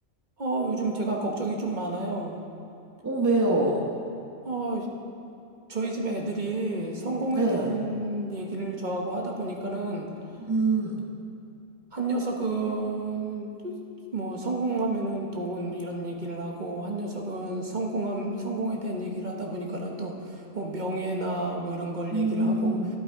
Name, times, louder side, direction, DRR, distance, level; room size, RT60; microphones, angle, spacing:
voice 1, 0.4-2.4 4.4-4.9 5.7-10.1 11.9-13.7 14.1-22.8, right 2 dB, 40° right, 0 dB, 1.3 m, -30 dB
voice 2, 3.0-3.8 7.3-7.8 10.4-11.0 22.1-22.9, right 2 dB, 15° right, 0 dB, 1.2 m, -24 dB
12.0 x 11.0 x 4.6 m, 2.7 s
omnidirectional pair, 1.3 m